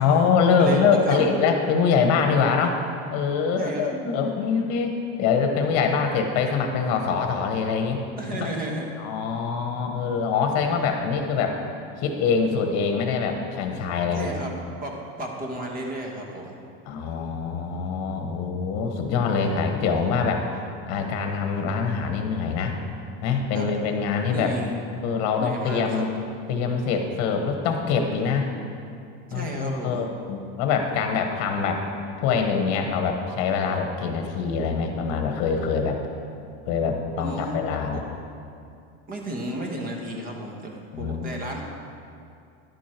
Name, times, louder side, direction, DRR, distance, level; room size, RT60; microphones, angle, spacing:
voice 1, 0.0-2.8 3.1-8.0 8.4-8.5 9.0-11.6 12.0-14.3 16.9-20.4 20.9-22.7 23.2-26.1 26.5-28.5 29.3-31.8 32.2-36.0 36.7-38.0 40.9-41.3, left 5 dB, 50° left, 4 dB, 1.2 m, -24 dB
voice 2, 0.6-1.3 3.6-3.9 8.2-8.9 14.1-14.5 14.8-16.5 23.5-23.7 24.3-25.0 25.4-26.1 29.3-30.0 37.2-37.6 37.9-38.0 39.1-41.6, right 1 dB, 25° right, 1 dB, 1.2 m, -33 dB
10.5 x 8.3 x 4.5 m, 2.5 s
cardioid pair, 170°, 33 cm